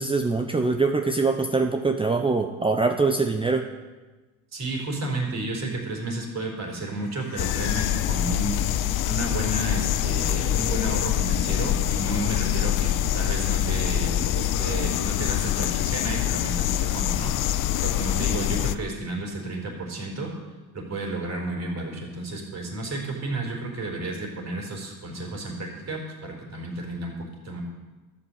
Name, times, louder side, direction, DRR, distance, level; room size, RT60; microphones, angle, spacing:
voice 1, 0.0-3.7, right 3 dB, 10° right, 5 dB, 0.8 m, -23 dB
voice 2, 4.5-8.6 9.0-20.3 20.7-27.6, right 2 dB, 35° right, 1 dB, 4.5 m, -32 dB
sound 1, 6.7-10.1, left 8 dB, 80° left, 1.8 m, -42 dB
sound 2, 7.4-18.8, left 11 dB, 45° left, 0.7 m, -25 dB
12.5 x 9.0 x 8.1 m, 1.2 s
supercardioid pair, 105°, 44 cm